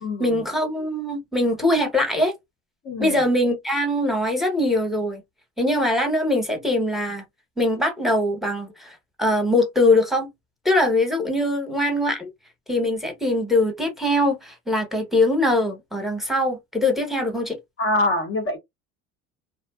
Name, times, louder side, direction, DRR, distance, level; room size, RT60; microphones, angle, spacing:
voice 1, 0.2-2.3 3.0-5.2 5.6-7.2 7.6-10.3 10.6-12.3 12.7-17.6, left 1 dB, ahead, 0.9 m, -22 dB
voice 2, 2.9-3.2 17.8-18.6, left 2 dB, 45° left, 0.7 m, -24 dB
2.6 x 2.1 x 2.3 m
supercardioid pair, 90°, 32 cm